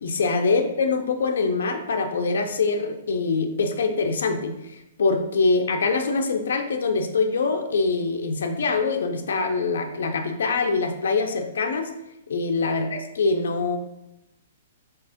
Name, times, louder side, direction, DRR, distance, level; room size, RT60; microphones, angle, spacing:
voice 1, 0.0-11.9 12.3-13.8, left 4 dB, 80° left, 5 dB, 0.4 m, -24 dB
3.4 x 2.8 x 3.5 m, 0.90 s
hypercardioid pair, 160°, 0 cm